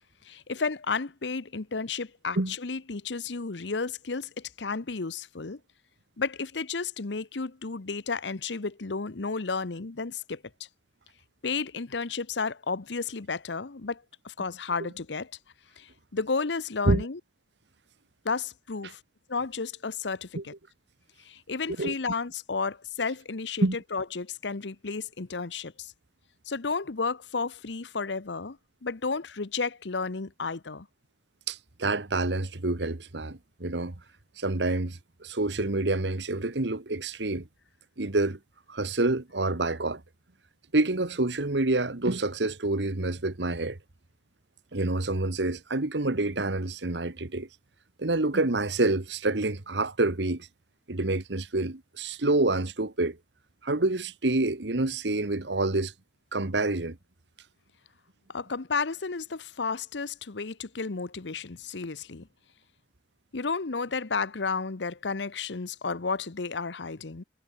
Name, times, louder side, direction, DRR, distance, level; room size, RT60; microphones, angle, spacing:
voice 1, 0.2-5.6 6.2-10.4 11.4-15.3 15.8-17.2 18.2-19.0 19.3-20.5 21.2-25.9 26.5-30.9 58.3-62.3 63.3-67.2, left 4 dB, 80° left, 1.0 m, -32 dB
voice 2, 31.5-33.9 34.4-37.5 38.0-38.4 38.7-40.0 40.7-43.8 44.7-47.5 48.0-50.5 50.9-53.2 53.6-55.9 56.3-57.0, right 2 dB, 75° right, 1.5 m, -27 dB
head